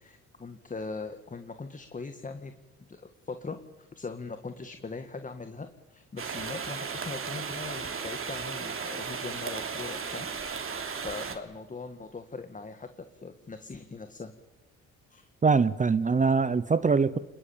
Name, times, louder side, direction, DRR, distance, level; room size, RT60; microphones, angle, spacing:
voice 1, 0.0-2.5 2.9-10.3 11.0-14.3 15.1-15.3, left 4 dB, 25° left, 8 dB, 1.7 m, -40 dB
sound 1, 6.2-11.4, right 5 dB, 45° right, 3.4 m, -35 dB
voice 2, 15.4-17.2, right 5 dB, 25° right, 15 dB, 0.8 m, -23 dB
26.5 x 21.5 x 8.7 m, 1.1 s
cardioid pair, 90°, 30 cm